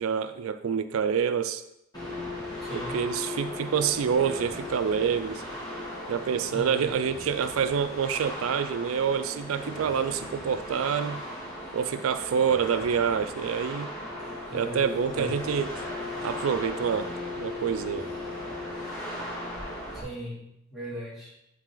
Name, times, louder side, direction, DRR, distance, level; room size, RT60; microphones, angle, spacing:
voice 1, 0.0-1.6 2.9-5.4 6.1-11.2 11.7-13.9 14.5-15.7 16.2-17.1 17.4-18.1, right 7 dB, 90° right, 11 dB, 0.4 m, -27 dB
sound 1, 1.9-20.0, left 1 dB, 20° left, 2.3 m, -37 dB
voice 2, 2.6-3.1 6.5-6.9 14.5-15.3 19.9-21.4, equal, ahead, -9 dB, 2.8 m, -39 dB
9.9 x 4.1 x 3.8 m, 0.83 s
head